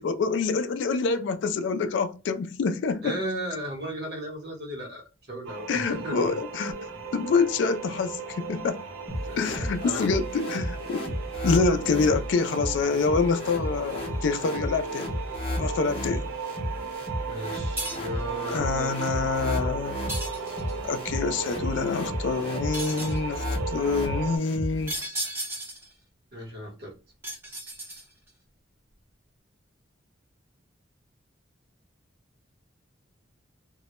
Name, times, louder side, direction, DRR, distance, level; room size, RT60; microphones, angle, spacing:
voice 1, 0.0-3.2 5.7-8.8 9.4-11.1 11.4-15.1 15.6-16.3 18.5-20.0 20.8-24.9, left 4 dB, 70° left, 0.3 m, -26 dB
voice 2, 3.0-6.2 9.2-10.0 17.3-19.1 26.3-26.9, right 1 dB, 55° right, 0.9 m, -36 dB
sound 1, 5.5-24.4, right 5 dB, 85° right, 0.5 m, -36 dB
sound 2, 9.1-25.1, left 1 dB, 30° left, 0.6 m, -33 dB
sound 3, 17.8-18.2 20.1-20.9 22.7-23.3 24.9-25.9 27.2-28.3, right 1 dB, 10° right, 0.5 m, -34 dB
2.1 x 2.0 x 2.8 m
head